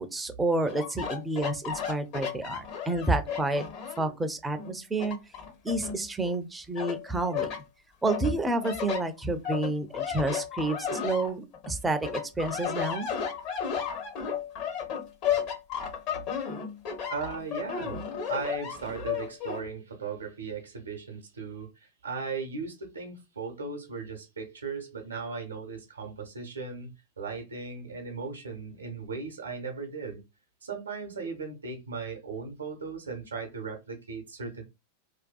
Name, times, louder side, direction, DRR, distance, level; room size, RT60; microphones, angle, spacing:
voice 1, 0.0-3.6 4.0-5.2 5.6-7.5 8.0-13.1, right 2 dB, 10° right, 0.4 m, -29 dB
sound 1, 0.7-4.1 4.6-6.4 6.8-7.6 8.1-11.7 12.0-19.6, left 7 dB, 45° left, 0.6 m, -33 dB
voice 2, 17.1-18.0 18.3-30.2 30.6-34.6, right 4 dB, 75° right, 0.6 m, -37 dB
2.5 x 2.2 x 2.2 m
figure-of-eight pair, 90°, 0 cm